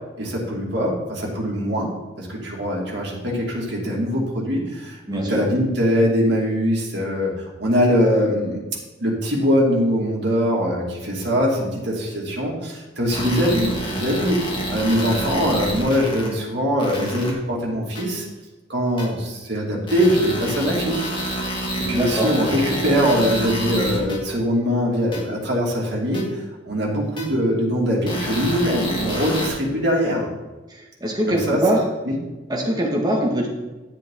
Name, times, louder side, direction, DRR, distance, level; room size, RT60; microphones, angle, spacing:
voice 1, 0.2-1.9 2.2-8.6 9.0-14.4 14.7-18.3 18.7-21.0 21.8-26.4 26.7-30.3 31.3-31.6 32.0-32.2, equal, 60° right, -3 dB, 2.6 m, -22 dB
voice 2, 5.1-5.5 21.9-22.3 31.0-31.8 32.5-33.5, right 1 dB, 20° right, -1 dB, 1.9 m, -22 dB
sound 1, 13.1-16.3 16.8-17.3 18.0-18.1 19.0-19.1 19.9-24.2 25.1-25.2 26.1-26.2 27.2-27.3 28.1-29.5, equal, 25° left, 2.1 m, -28 dB
11.0 x 7.5 x 3.9 m, 1.1 s
head